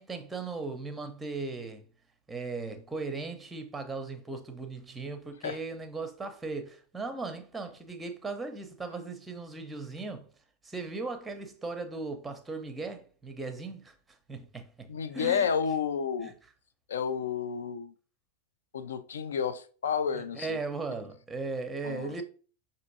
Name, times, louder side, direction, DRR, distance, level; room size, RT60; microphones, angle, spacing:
voice 1, 0.0-1.8 2.3-10.3 10.6-14.0 14.3-15.5 16.2-16.3 20.1-22.2, right 3 dB, 10° right, 0.7 m, -37 dB
voice 2, 14.9-16.3 16.9-17.9 18.7-20.6 21.8-22.2, left 7 dB, 65° left, 0.4 m, -31 dB
5.9 x 2.6 x 2.6 m
figure-of-eight pair, 90°, 0 cm